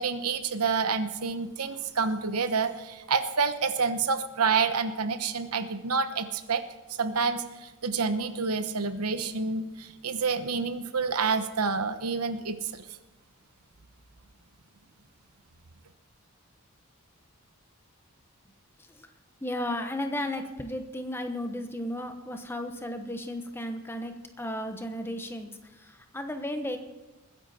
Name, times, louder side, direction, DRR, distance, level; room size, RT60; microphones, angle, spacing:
voice 1, 0.0-6.6 6.9-12.9, right 5 dB, 90° right, 10 dB, 1.0 m, -28 dB
voice 2, 19.4-26.8, left 1 dB, 10° left, 6 dB, 1.0 m, -34 dB
21.0 x 10.0 x 4.3 m, 1.1 s
head